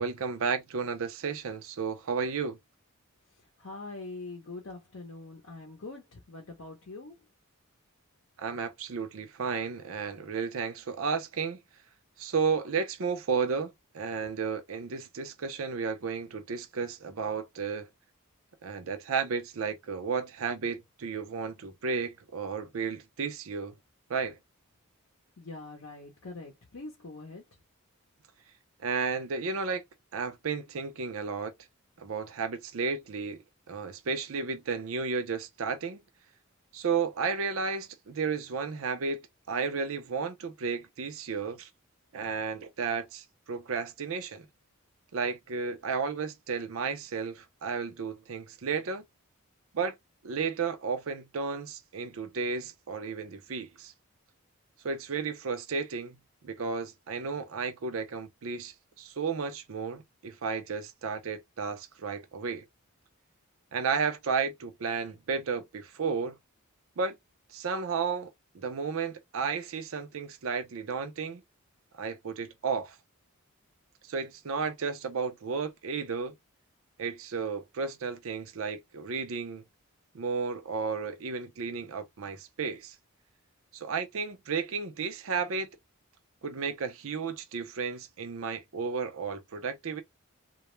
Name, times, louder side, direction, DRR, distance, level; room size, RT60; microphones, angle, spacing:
voice 1, 0.0-2.6 8.4-11.6 12.2-17.9 18.6-23.7 24.1-24.4 28.8-29.8 30.1-31.5 32.0-33.4 33.7-36.0 36.7-39.2 39.5-41.7 42.1-44.5 45.1-49.0 49.7-50.0 50.2-53.9 54.8-56.2 56.4-62.7 63.7-66.3 67.0-67.2 67.5-71.4 71.9-73.0 74.0-76.3 77.0-79.6 80.1-82.9 83.7-85.7 86.4-90.0, right 5 dB, 70° right, 0.5 m, -33 dB
voice 2, 3.6-7.3 14.2-14.3 25.4-27.4, left 3 dB, 65° left, 0.6 m, -43 dB
2.3 x 2.0 x 3.0 m
head